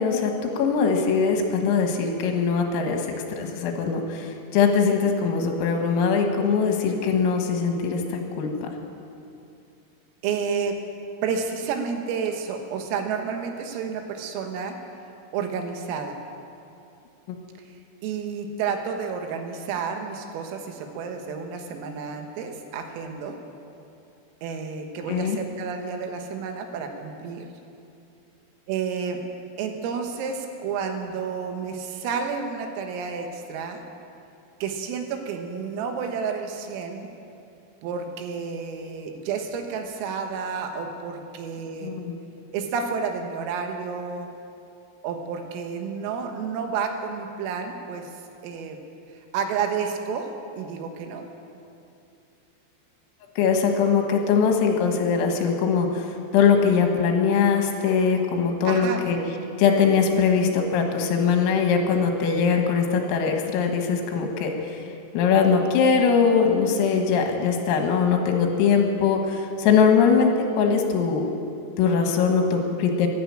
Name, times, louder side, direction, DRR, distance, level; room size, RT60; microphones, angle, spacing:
voice 1, 0.0-8.7 17.3-17.4 25.1-25.4 41.8-42.1 53.4-59.2 59.6-64.5 65.1-71.3 71.8-73.1, left 6 dB, 80° left, 3 dB, 4.1 m, -21 dB
voice 2, 10.2-10.8 11.2-14.8 15.3-16.2 18.0-23.4 24.4-27.5 28.7-29.2 29.6-33.8 34.6-37.1 37.8-41.9 42.5-44.3 45.0-48.1 48.4-48.8 49.3-50.3 50.6-51.3 58.7-59.1, right 6 dB, 80° right, 4 dB, 3.9 m, -30 dB
14.0 x 12.0 x 8.8 m, 2.6 s
omnidirectional pair, 6.0 m